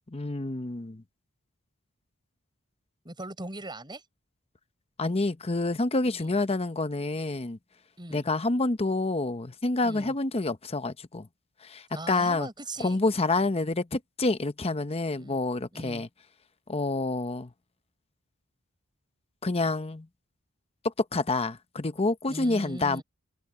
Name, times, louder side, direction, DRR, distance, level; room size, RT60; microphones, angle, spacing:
voice 1, 0.1-1.0 5.0-7.6 8.1-11.3 11.6-12.5 12.8-16.1 16.7-17.5 19.4-20.1 21.1-23.0, left 2 dB, 25° left, 0.8 m, -28 dB
voice 2, 3.0-4.0 6.0-6.3 8.0-8.3 9.8-10.1 11.9-13.0 15.2-15.4 15.7-16.1 22.3-23.0, right 1 dB, 20° right, 6.6 m, -40 dB
head